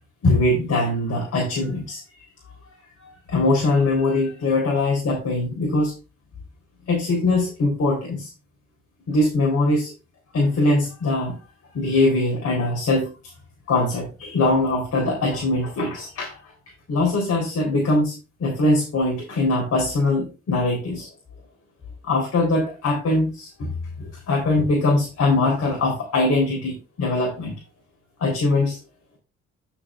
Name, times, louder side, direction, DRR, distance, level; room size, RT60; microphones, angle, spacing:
voice 1, 0.2-2.0 3.0-5.9 6.9-8.3 9.1-9.9 10.3-11.4 11.7-13.1 13.7-16.5 16.9-18.1 18.4-21.1 22.0-23.7 24.0-27.6 28.2-28.8, left 2 dB, 55° left, -1 dB, 4.0 m, -22 dB
12.5 x 6.4 x 2.5 m, 0.31 s
cardioid pair, 90°, 30 cm